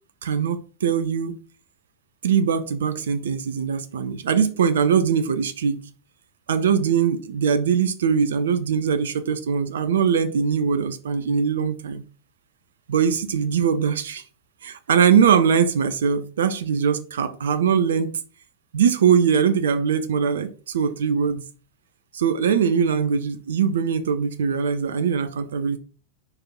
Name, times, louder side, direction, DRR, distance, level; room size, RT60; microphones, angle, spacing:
voice 1, 0.2-1.4 2.2-5.8 6.5-12.0 12.9-14.2 14.6-18.1 18.7-21.4 22.1-25.8, right 7 dB, 65° right, 0.7 m, -21 dB
4.8 x 4.7 x 5.7 m
figure-of-eight pair, 90°, 0 cm